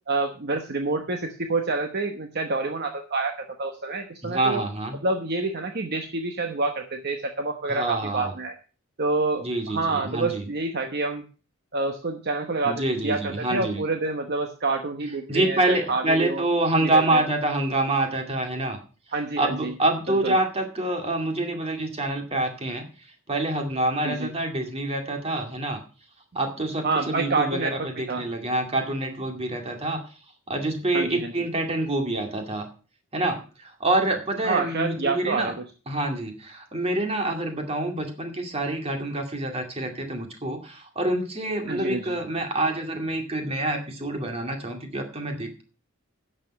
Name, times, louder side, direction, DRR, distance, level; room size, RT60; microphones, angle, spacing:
voice 1, 0.1-4.6 5.0-8.5 9.0-11.3 11.7-16.4 16.8-17.2 19.1-19.7 20.1-20.3 24.0-24.3 26.8-28.3 30.9-31.3 34.4-35.5 41.7-42.2, right 3 dB, 50° right, 5 dB, 1.0 m, -28 dB
voice 2, 4.2-5.0 7.7-8.3 9.4-10.5 12.6-13.8 15.3-18.8 19.4-22.9 23.3-25.8 26.3-30.0 30.5-32.7 33.1-35.5 35.9-45.6, right 1 dB, 30° right, 3 dB, 2.2 m, -26 dB
10.5 x 6.8 x 6.4 m, 0.37 s
head